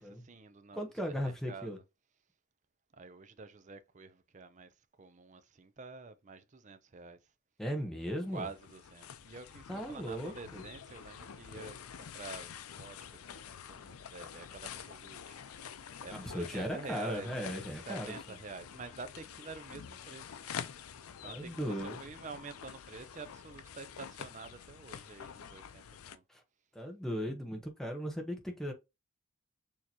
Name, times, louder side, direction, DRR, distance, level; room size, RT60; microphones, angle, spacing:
voice 1, 0.0-1.7 2.9-7.2 8.1-20.4 21.2-21.7 22.0-26.2, right 4 dB, 35° right, 0.5 m, -48 dB
voice 2, 0.7-1.8 7.6-8.5 9.7-10.6 16.1-18.2 21.2-22.0 26.3-26.4 26.7-28.7, equal, ahead, 1.0 m, -37 dB
sound 1, 8.2-26.2, left 8 dB, 90° left, 0.5 m, -47 dB
6.5 x 2.9 x 2.8 m
head